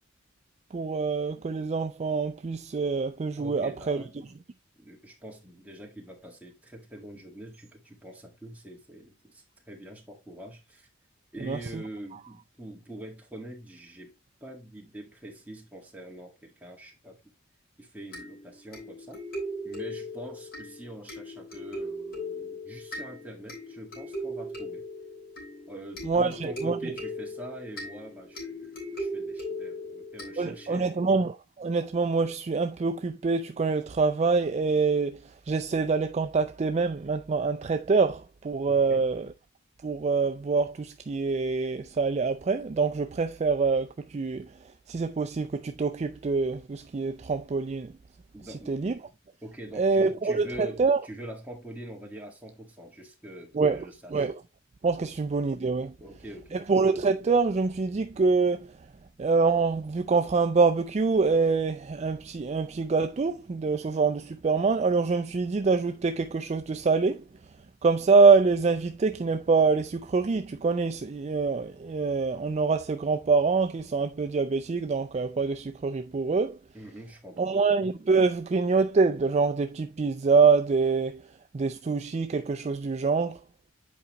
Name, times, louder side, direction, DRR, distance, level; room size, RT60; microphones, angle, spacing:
voice 1, 0.7-4.0 11.4-11.6 26.0-26.9 30.4-35.2 35.5-39.3 39.8-44.5 44.9-47.9 48.7-49.0 49.8-51.0 53.5-53.8 54.1-54.3 54.8-55.9 56.5-58.7 59.2-67.2 67.8-76.6 77.4-81.2 81.5-83.4, right 4 dB, 30° right, 0.4 m, -25 dB
voice 2, 3.4-4.3 4.7-10.9 11.3-14.1 14.4-17.3 17.8-19.2 19.6-24.9 25.7-31.1 38.7-39.1 48.3-48.8 49.4-54.3 55.0-55.1 56.0-56.6 76.7-77.6, right 1 dB, 10° right, 1.7 m, -44 dB
sound 1, 18.1-30.9, equal, 45° left, 3.3 m, -38 dB
8.4 x 5.0 x 2.9 m
head